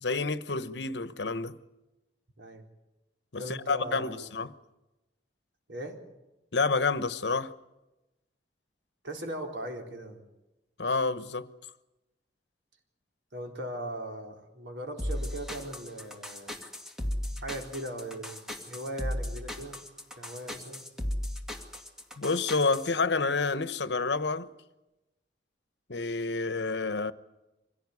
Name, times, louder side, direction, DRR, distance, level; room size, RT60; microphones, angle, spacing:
voice 1, 0.0-1.6 3.3-4.5 6.5-7.5 10.8-11.5 22.2-24.5 25.9-27.1, left 4 dB, 75° left, 1.1 m, -29 dB
voice 2, 3.4-4.3 5.7-6.0 9.0-10.3 13.3-16.6 17.4-19.8 20.2-20.8, right 1 dB, 90° right, 4.1 m, -39 dB
sound 1, 15.0-22.9, left 1 dB, 5° right, 2.2 m, -36 dB
25.0 x 17.0 x 9.7 m
head